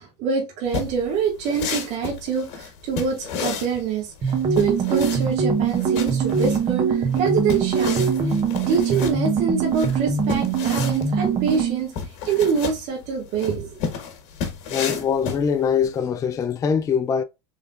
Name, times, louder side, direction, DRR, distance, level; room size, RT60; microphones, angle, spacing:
voice 1, 0.0-8.3 8.7-11.9 12.2-13.8, right 6 dB, 55° right, 1.7 m, -25 dB
sound 1, 0.7-15.9, left 6 dB, 60° left, 1.4 m, -33 dB
sound 2, 4.2-11.9, right 6 dB, 40° right, 1.3 m, -22 dB
voice 2, 14.7-17.2, left 7 dB, 25° left, 0.4 m, -23 dB
3.7 x 3.5 x 2.4 m
supercardioid pair, 105°, 14 cm